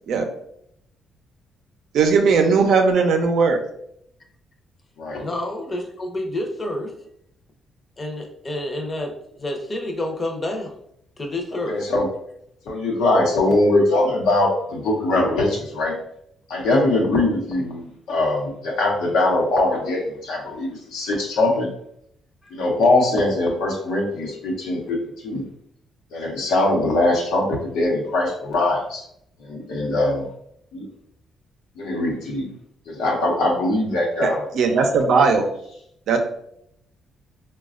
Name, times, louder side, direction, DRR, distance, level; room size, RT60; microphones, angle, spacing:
voice 1, 1.9-3.6 34.2-35.5 36.1-36.2, right 4 dB, 75° right, 5 dB, 0.5 m, -18 dB
voice 2, 5.2-6.9 8.0-10.8 11.2-11.8 22.4-22.5, left 1 dB, 30° left, 2 dB, 0.7 m, -29 dB
voice 3, 11.7-12.1 12.7-15.9 16.5-21.7 22.5-25.4 26.1-29.0 29.4-30.2 30.7-30.9 31.8-32.5 32.9-34.4, left 2 dB, 90° left, -1 dB, 0.9 m, -21 dB
4.0 x 2.2 x 2.4 m, 0.73 s
cardioid pair, 90°, 0 cm